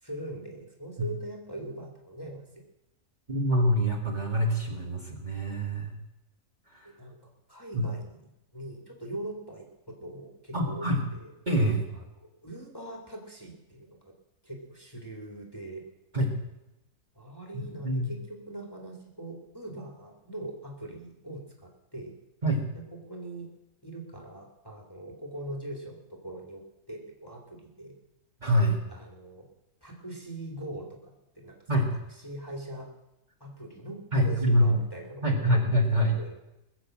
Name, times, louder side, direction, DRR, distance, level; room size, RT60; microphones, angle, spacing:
voice 1, 0.0-2.6 6.8-8.2 8.5-10.9 11.1-11.3 12.2-14.0 14.4-15.8 17.1-22.1 22.7-23.5 23.8-26.6 26.9-27.9 28.9-29.5 29.8-32.9 33.4-35.5 36.1-36.4, right 1 dB, 15° left, -1 dB, 2.0 m, -42 dB
voice 2, 3.3-6.0 6.7-6.9 7.7-7.8 10.5-11.0 11.5-11.8 16.1-16.3 17.8-18.1 22.4-22.6 28.4-28.8 31.7-31.9 34.1-34.8 35.2-36.2, equal, 25° right, -1 dB, 2.0 m, -25 dB
20.5 x 7.3 x 7.5 m, 0.92 s
omnidirectional pair, 1.8 m